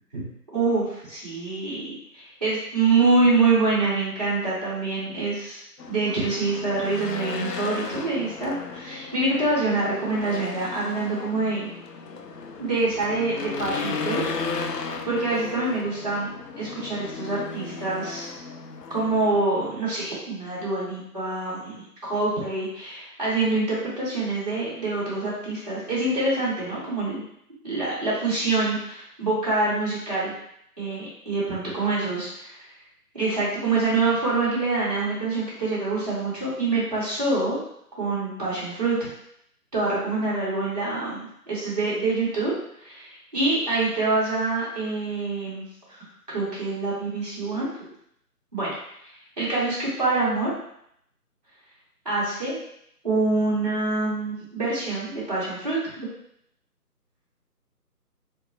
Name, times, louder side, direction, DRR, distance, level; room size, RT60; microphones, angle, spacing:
voice 1, 0.5-11.7 12.6-16.3 16.6-18.3 18.9-27.2 27.6-30.3 30.8-32.3 33.1-37.6 38.0-39.1 39.7-42.5 42.8-47.7 48.5-48.7 49.4-50.5 52.0-52.5 53.0-55.8, right 3 dB, 25° right, -9 dB, 0.9 m, -26 dB
Race car auto racing / Engine, 5.8-19.4, left 5 dB, 85° left, 0.5 m, -35 dB
3.4 x 2.0 x 2.7 m, 0.73 s
figure-of-eight pair, 155°, 47 cm